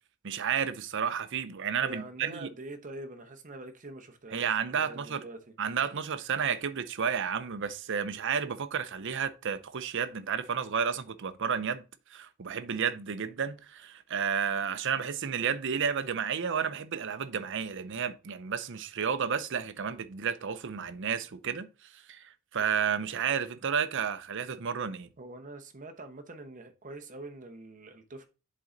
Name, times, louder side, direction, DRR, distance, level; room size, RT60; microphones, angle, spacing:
voice 1, 0.2-2.5 4.3-5.2 5.6-11.8 12.1-21.7 21.9-25.1, right 7 dB, 55° right, 0.6 m, -31 dB
voice 2, 1.8-5.5 25.2-28.3, right 2 dB, 35° right, 0.9 m, -44 dB
7.5 x 3.8 x 3.9 m
head